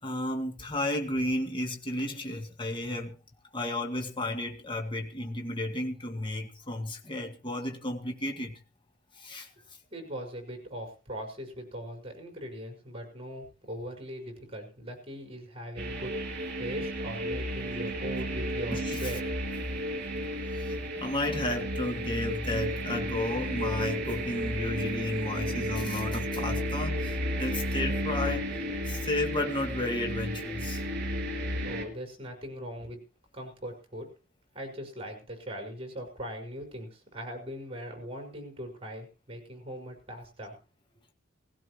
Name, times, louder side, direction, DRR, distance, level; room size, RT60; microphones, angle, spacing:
voice 1, 0.0-3.2 3.5-8.6 9.2-9.5 18.7-19.1 20.5-30.8, left 1 dB, 25° left, 1.8 m, -33 dB
voice 2, 9.9-19.2 31.6-33.0 33.3-34.1 34.5-40.5, equal, 30° right, 5.7 m, -40 dB
sound 1, 15.8-31.8, equal, 55° right, 3.5 m, -33 dB
19.0 x 16.5 x 3.1 m
head